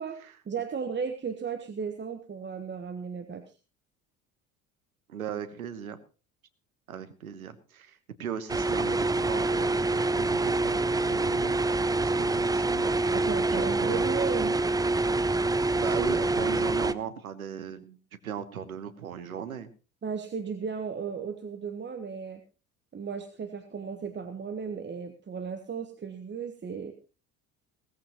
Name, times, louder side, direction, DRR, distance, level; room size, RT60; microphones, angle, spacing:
voice 1, 0.0-3.4 13.1-14.6 20.0-22.4 22.9-26.9, right 6 dB, 25° right, 8 dB, 1.3 m, -35 dB
voice 2, 5.1-6.0 6.9-11.6 12.0-12.9 13.5-14.0 15.7-19.7, right 8 dB, 85° right, 12 dB, 1.2 m, -38 dB
sound 1, 8.5-16.9, right 2 dB, 10° right, 0.6 m, -26 dB
18.0 x 14.5 x 3.0 m, 0.34 s
figure-of-eight pair, 60°, 41 cm